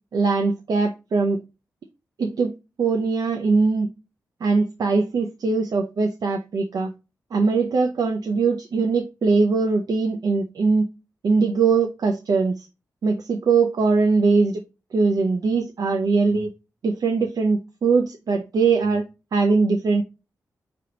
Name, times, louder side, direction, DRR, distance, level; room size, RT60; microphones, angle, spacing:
voice 1, 0.1-1.4 2.2-2.5 2.8-3.9 4.4-6.9 7.3-10.9 11.2-12.7 13.0-14.6 14.9-16.5 16.8-19.0 19.3-20.0, right 4 dB, 70° right, 0.6 m, -21 dB
4.9 x 3.4 x 2.8 m
wide cardioid pair, 115°, 7 cm